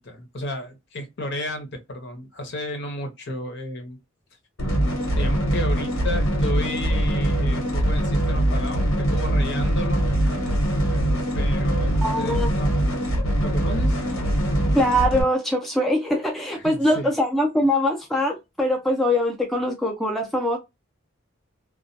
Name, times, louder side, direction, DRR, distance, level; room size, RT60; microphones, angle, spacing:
voice 1, 0.0-4.0 5.1-10.1 11.3-12.7 13.1-14.0 16.6-17.1, left 1 dB, 55° left, 0.8 m, -33 dB
sound 1, 4.6-15.2, right 1 dB, 85° left, 1.1 m, -22 dB
voice 2, 12.0-12.5 14.8-20.6, left 1 dB, ahead, 0.4 m, -22 dB
2.3 x 2.1 x 2.6 m
head